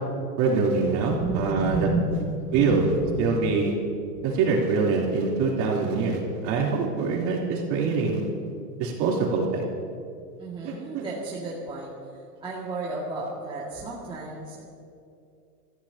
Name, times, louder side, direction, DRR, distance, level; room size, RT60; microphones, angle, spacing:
voice 1, 0.4-1.9 2.5-2.9 3.2-3.7 4.2-8.2 8.8-9.6 10.6-11.1, right 4 dB, 35° right, -2 dB, 3.6 m, -24 dB
voice 2, 1.1-3.3 4.2-4.3 5.3-5.4 10.4-11.9 12.4-14.6, right 2 dB, 10° right, -6 dB, 2.3 m, -31 dB
27.5 x 15.0 x 2.9 m, 2.4 s
hypercardioid pair, 140°, 48 cm